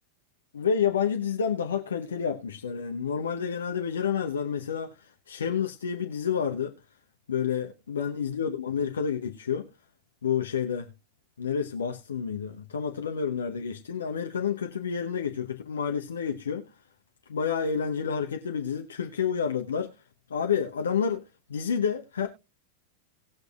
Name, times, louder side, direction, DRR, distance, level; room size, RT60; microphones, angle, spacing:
voice 1, 0.5-6.7 7.3-9.7 10.2-10.9 11.4-16.6 17.3-20.0 20.3-21.2 21.5-22.3, left 7 dB, 70° left, 0.9 m, -29 dB
19.0 x 6.5 x 2.3 m
figure-of-eight pair, 90°, 0 cm